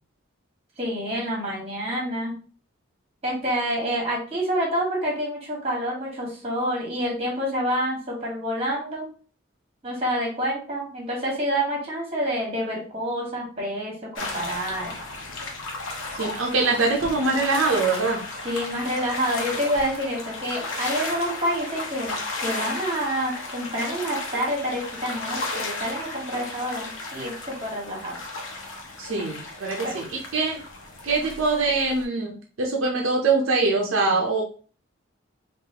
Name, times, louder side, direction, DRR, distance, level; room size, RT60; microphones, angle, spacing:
voice 1, 0.8-2.4 3.2-9.1 9.8-15.0 18.4-22.2 22.4-28.2 29.8-29.9, equal, 30° right, -2 dB, 1.4 m, -28 dB
sound 1, 14.2-32.0, left 2 dB, 75° left, 0.9 m, -34 dB
voice 2, 16.1-18.2 29.0-30.6 31.0-34.4, right 3 dB, 70° right, 0 dB, 0.6 m, -23 dB
3.9 x 2.6 x 2.9 m, 0.40 s
head